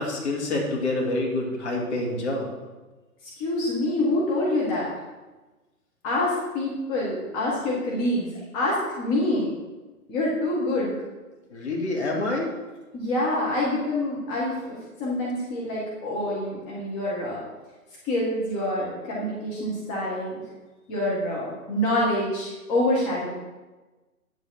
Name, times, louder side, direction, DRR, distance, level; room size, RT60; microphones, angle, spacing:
voice 1, 0.0-2.5 11.5-12.5, left 2 dB, 50° left, -2 dB, 2.4 m, -27 dB
voice 2, 3.2-4.9 6.0-8.3 8.5-9.5 10.1-10.9 12.9-17.4 18.0-20.4 20.9-23.3, left 1 dB, 25° left, -5 dB, 1.8 m, -26 dB
9.4 x 7.3 x 4.3 m, 1.2 s
figure-of-eight pair, 130°, 45 cm